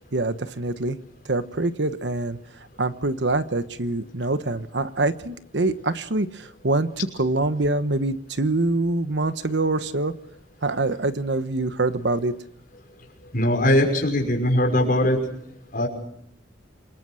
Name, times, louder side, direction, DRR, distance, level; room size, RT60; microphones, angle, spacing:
voice 1, 0.1-1.0 1.2-2.4 2.8-10.1 10.6-12.3, right 2 dB, 65° right, 11 dB, 1.1 m, -25 dB
voice 2, 13.3-15.2 15.7-15.9, left 1 dB, 50° left, 3 dB, 5.7 m, -20 dB
28.0 x 21.0 x 6.4 m, 0.72 s
head